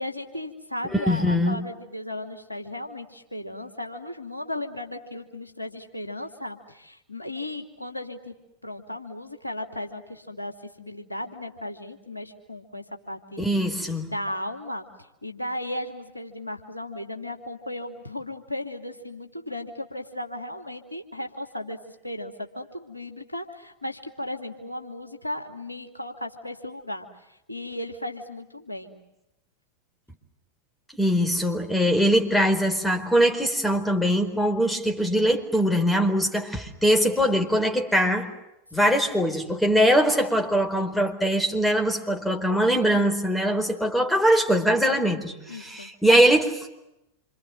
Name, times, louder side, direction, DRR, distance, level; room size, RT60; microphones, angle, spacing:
voice 1, 0.0-8.3 8.6-13.4 14.0-14.9 15.2-21.8 22.0-29.0 45.5-45.9, left 1 dB, 85° left, 4 dB, 3.0 m, -35 dB
voice 2, 0.9-1.6 13.4-14.1 31.0-38.3 38.7-46.7, equal, 5° left, 4 dB, 4.6 m, -22 dB
28.0 x 27.0 x 7.8 m, 0.88 s
figure-of-eight pair, 90°, 0 cm